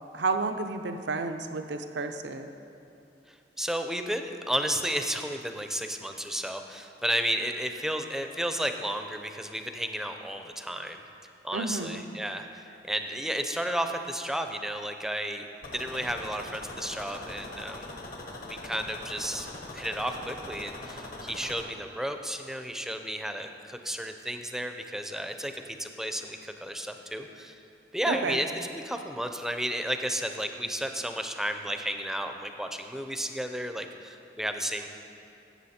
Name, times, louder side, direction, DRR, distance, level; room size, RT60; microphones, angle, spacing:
voice 1, 0.1-2.5 11.5-12.0 28.1-28.4, right 3 dB, 80° right, 7 dB, 0.7 m, -31 dB
voice 2, 3.3-11.0 11.4-17.9 18.5-19.5 19.7-27.6 27.9-34.9, equal, 5° right, 6 dB, 0.6 m, -33 dB
sound 1, 15.6-21.6, left 2 dB, 55° left, 1.2 m, -42 dB
16.0 x 7.5 x 4.3 m, 2.6 s
head